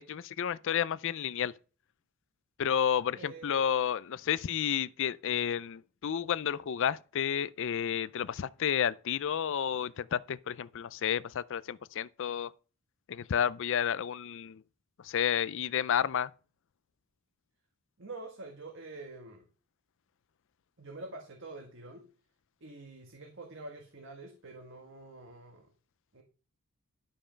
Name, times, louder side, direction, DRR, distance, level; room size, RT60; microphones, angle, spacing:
voice 1, 0.0-1.5 2.6-12.5 13.1-14.6 15.0-16.3, left 8 dB, 60° left, 0.4 m, -31 dB
voice 2, 3.1-3.8 18.0-19.5 20.8-22.1 22.6-25.7 26.1-26.2, right 2 dB, 55° right, 1.6 m, -46 dB
12.0 x 5.4 x 5.1 m
head